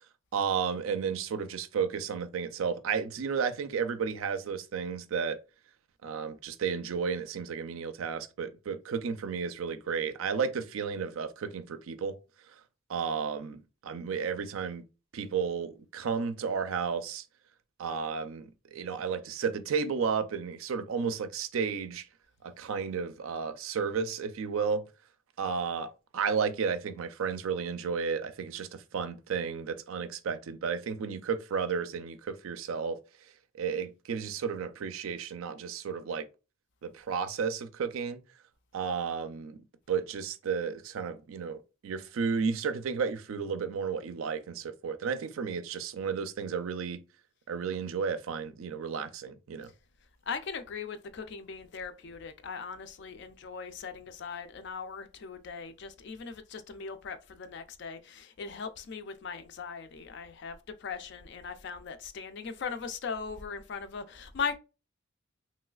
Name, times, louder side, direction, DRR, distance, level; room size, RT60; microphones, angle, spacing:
voice 1, 0.3-5.4 6.0-12.2 12.9-14.8 15.1-17.2 17.8-22.1 22.4-24.8 25.4-33.0 33.6-36.2 36.8-38.2 38.7-39.6 39.9-47.0 47.5-49.7, right 6 dB, 75° right, 0.4 m, -33 dB
voice 2, 50.3-64.6, left 5 dB, 55° left, 0.4 m, -39 dB
3.1 x 3.0 x 2.3 m
head